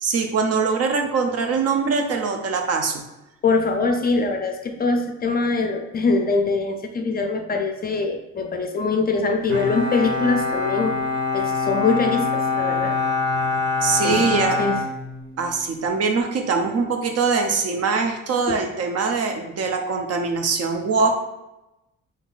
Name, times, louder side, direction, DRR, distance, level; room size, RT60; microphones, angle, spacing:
voice 1, 0.0-3.0 13.8-14.6 15.4-21.1, right 4 dB, 55° right, 4 dB, 0.6 m, -22 dB
voice 2, 3.4-11.0 11.3-13.0 14.0-14.8 18.5-18.6, left 3 dB, 30° left, 5 dB, 0.4 m, -23 dB
Bowed string instrument, 9.5-15.6, left 4 dB, 40° right, 1.0 m, -25 dB
3.6 x 2.8 x 2.4 m, 0.96 s
cardioid pair, 90°, 30 cm